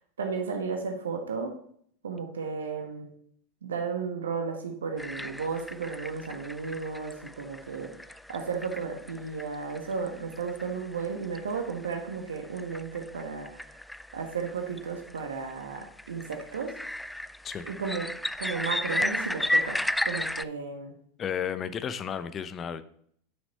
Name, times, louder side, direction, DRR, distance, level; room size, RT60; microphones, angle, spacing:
voice 1, 0.2-1.6 2.0-3.1 3.6-8.0 8.3-13.8 14.1-16.8 17.6-18.1 18.4-20.9, right 5 dB, 75° right, 4 dB, 1.2 m, -34 dB
sound 1, 5.0-20.4, left 1 dB, 5° left, 0.3 m, -35 dB
voice 2, 21.2-22.8, left 8 dB, 30° left, 13 dB, 0.7 m, -33 dB
9.5 x 6.2 x 4.1 m, 0.64 s
figure-of-eight pair, 85°, 0 cm